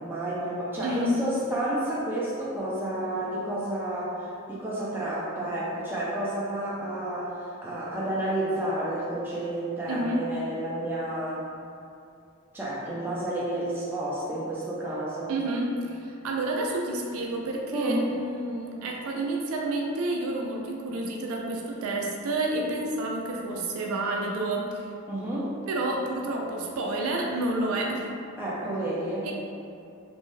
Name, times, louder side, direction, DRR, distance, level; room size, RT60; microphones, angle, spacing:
voice 1, 0.0-11.4 12.5-15.3 17.7-18.1 25.1-25.5 28.4-29.3, right 1 dB, 10° right, -7 dB, 0.4 m, -30 dB
voice 2, 0.8-1.2 9.9-10.3 15.3-24.9 25.7-28.1 29.2-29.3, right 2 dB, 75° right, -1 dB, 0.4 m, -29 dB
2.6 x 2.2 x 3.1 m, 2.5 s
head